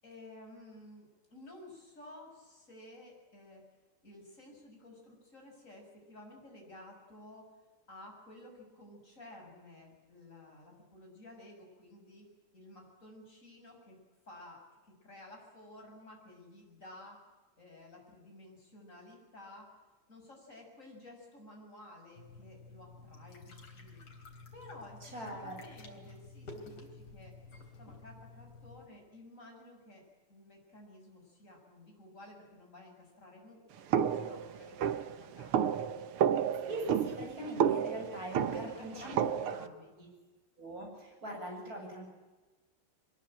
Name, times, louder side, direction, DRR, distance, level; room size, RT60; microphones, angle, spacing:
voice 1, 0.0-3.6 4.0-7.5 7.9-14.0 14.3-17.2 17.6-19.7 20.1-24.0 24.5-27.3 27.8-30.0 30.3-36.1 38.5-39.9, left 1 dB, 35° left, 1 dB, 7.4 m, -53 dB
sound 1, 22.2-28.9, left 3 dB, 80° left, 4.4 m, -51 dB
voice 2, 25.0-25.6 25.9-26.0 36.6-39.4 40.0-40.1 40.6-42.1, right 1 dB, 40° right, 1 dB, 8.6 m, -42 dB
sound 2, 33.9-39.7, right 8 dB, 85° right, 2.0 m, -31 dB
23.5 x 21.5 x 9.0 m, 1.2 s
omnidirectional pair, 2.4 m